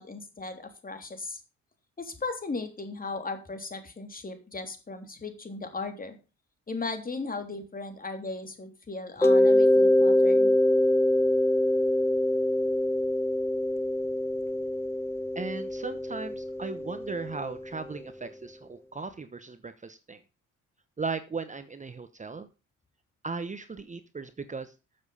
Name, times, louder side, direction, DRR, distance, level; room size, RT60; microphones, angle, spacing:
voice 1, 0.0-1.4 2.0-6.2 6.7-10.5, left 3 dB, 30° left, 6 dB, 3.2 m, -37 dB
Mallet percussion, 9.2-17.8, left 1 dB, 10° left, 0.8 m, -24 dB
voice 2, 15.3-20.2 21.0-22.5 23.2-24.7, right 4 dB, 25° right, 11 dB, 1.0 m, -37 dB
13.0 x 7.3 x 5.6 m, 0.31 s
cardioid pair, 90°, 30 cm